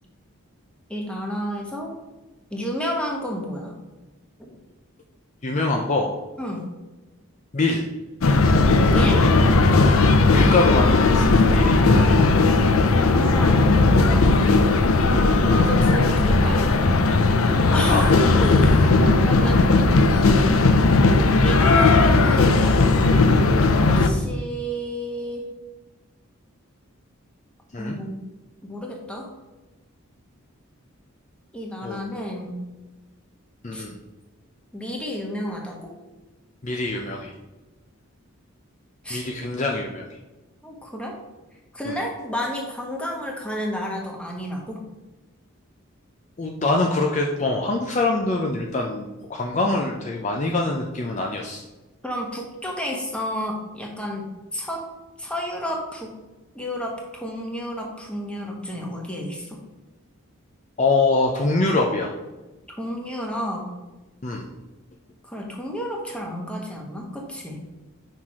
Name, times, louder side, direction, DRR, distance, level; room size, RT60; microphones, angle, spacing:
voice 1, 0.9-1.9 2.5-3.7 4.5-4.6 6.4-6.7 8.9-9.3 12.9-14.4 15.1-16.9 17.7-18.9 19.2-19.8 21.4-22.6 23.8-25.4 27.8-28.2 28.6-29.3 31.5-32.6 33.7-33.8 34.7-35.9 39.0-39.2 40.6-41.2 41.7-44.8 52.0-54.8 55.2-56.1 56.5-59.6 62.7-63.7 65.2-67.6, equal, 5° left, -1 dB, 1.1 m, -31 dB
voice 2, 5.4-6.1 7.5-7.9 9.8-10.0 10.3-12.2 14.4-14.5 17.9-18.0 18.8-19.1 27.7-28.0 31.8-32.0 33.6-34.0 36.6-37.3 39.1-40.0 41.9-42.0 46.4-51.6 60.8-62.1 64.2-64.5, left 2 dB, 35° left, 1 dB, 0.5 m, -24 dB
sound 1, 8.2-24.1, left 3 dB, 80° left, 0.6 m, -17 dB
5.8 x 4.5 x 4.8 m, 1.1 s
head